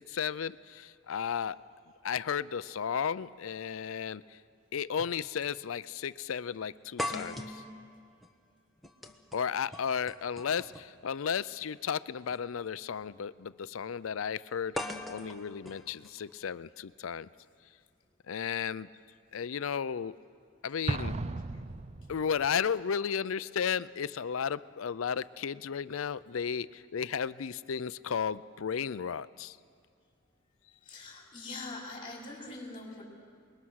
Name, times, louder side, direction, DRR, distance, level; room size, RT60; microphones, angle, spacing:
voice 1, 0.0-1.6 2.0-4.4 4.7-7.6 9.3-17.3 18.3-18.9 19.3-20.2 20.6-21.2 22.1-29.6, left 7 dB, 75° left, 17 dB, 0.5 m, -34 dB
sound 1, 5.0-5.2 5.5-5.6 7.0-11.0 12.2-12.4 14.8-16.8, left 1 dB, ahead, 1.2 m, -41 dB
Explosion, 20.9-22.5, right 2 dB, 30° right, 0.6 m, -35 dB
voice 2, 30.8-33.0, left 2 dB, 25° left, -2 dB, 5.0 m, -43 dB
28.0 x 21.0 x 6.4 m, 2.2 s
head